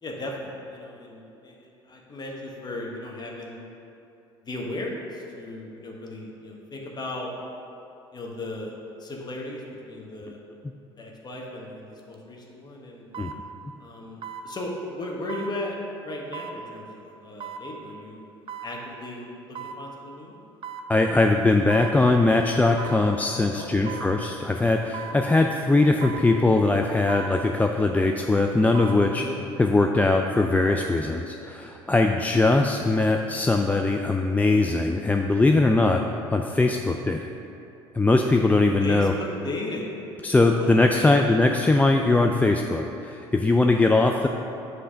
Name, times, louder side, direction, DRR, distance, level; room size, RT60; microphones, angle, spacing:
voice 1, 0.0-3.6 4.4-7.3 8.1-10.4 11.0-13.0 13.8-18.2 18.6-20.4 23.5-24.0 29.1-29.4 38.8-39.9 40.5-41.2, left 1 dB, 30° left, -2 dB, 1.3 m, -36 dB
sound 1, 12.0-12.1 13.1-13.4 14.2-14.5 15.3-15.5 16.3-16.6 17.4-17.6 18.5-18.7 19.6-19.8 20.6-20.9 21.7-22.0 22.8-23.0 23.9-24.1 24.9-25.2 26.0-26.3 27.1-27.3 28.5-29.0 29.4-29.5, right 7 dB, 40° right, 0.6 m, -37 dB
voice 2, 20.9-29.2 29.6-36.0 36.3-37.3 37.9-39.1 40.2-44.3, left 2 dB, 10° left, 3 dB, 0.3 m, -21 dB
7.7 x 3.3 x 5.1 m, 2.8 s
hypercardioid pair, 65°, 13 cm